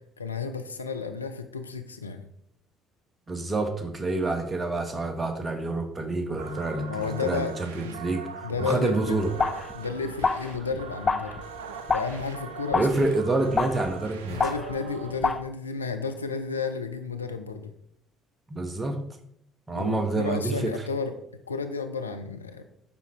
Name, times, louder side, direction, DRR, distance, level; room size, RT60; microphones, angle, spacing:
voice 1, 0.2-2.2 6.9-7.6 7.8-8.0 8.4-9.2 9.7-11.3 11.9-13.0 14.3-17.7 19.7-21.1 21.5-22.7, left 5 dB, 90° left, 8 dB, 0.4 m, -32 dB
voice 2, 3.3-9.3 12.7-14.4 18.5-19.0 19.7-20.8, right 2 dB, 25° right, 6 dB, 1.1 m, -28 dB
sound 1, 6.3-15.1, right 6 dB, 80° right, 0.4 m, -41 dB
sound 2, 9.1-15.4, left 4 dB, 35° left, 0.6 m, -30 dB
7.0 x 5.3 x 3.1 m, 0.70 s
figure-of-eight pair, 50°, 0 cm